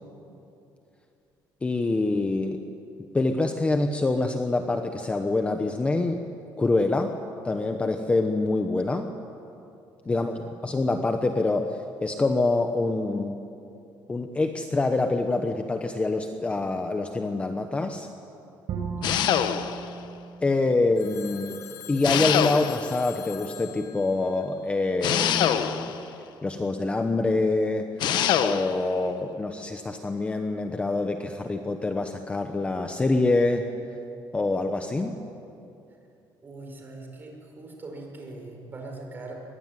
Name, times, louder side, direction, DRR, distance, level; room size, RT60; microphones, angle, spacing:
voice 1, 1.6-2.6 3.1-6.2 6.6-7.2 7.4-9.1 10.1-13.4 14.1-18.1 20.4-21.6 21.9-25.9 26.4-27.9 28.4-33.7 34.3-35.2, left 2 dB, 15° left, 6 dB, 1.0 m, -25 dB
voice 2, 10.0-10.5 19.0-19.3 36.4-39.4, right 2 dB, 25° right, 1 dB, 5.5 m, -42 dB
Bowed string instrument, 18.7-21.8, right 5 dB, 60° right, 4.2 m, -37 dB
sound 1, 19.0-19.9 22.0-23.0 25.0-26.0 28.0-28.8, left 10 dB, 65° left, 1.2 m, -24 dB
Telephone, 21.0-25.2, left 9 dB, 45° left, 2.0 m, -45 dB
23.5 x 21.5 x 9.5 m, 2.7 s
cardioid pair, 160°, 8 cm